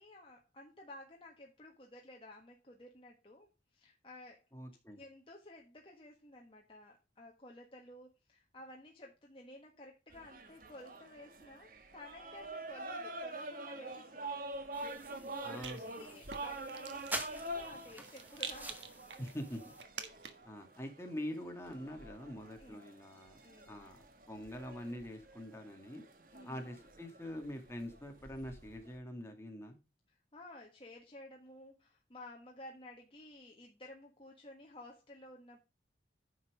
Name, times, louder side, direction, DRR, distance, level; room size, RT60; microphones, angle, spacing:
voice 1, 0.0-4.4 5.0-14.4 14.6-18.8 21.7-21.9 22.6-22.9 23.4-23.9 26.3-26.6 30.1-35.6, left 1 dB, 30° left, 0 dB, 1.4 m, -54 dB
voice 2, 4.5-5.0 15.4-16.2 19.2-19.7 20.4-23.4 23.7-24.0 24.3-26.0 26.4-29.8, equal, 15° left, 3 dB, 2.2 m, -44 dB
sound 1, 10.1-29.0, right 2 dB, 50° right, 1.4 m, -47 dB
Rattle, 14.5-20.6, right 7 dB, 80° right, 1.5 m, -49 dB
sound 2, 14.7-19.8, right 1 dB, 10° right, 1.4 m, -47 dB
9.9 x 6.0 x 4.9 m, 0.27 s
head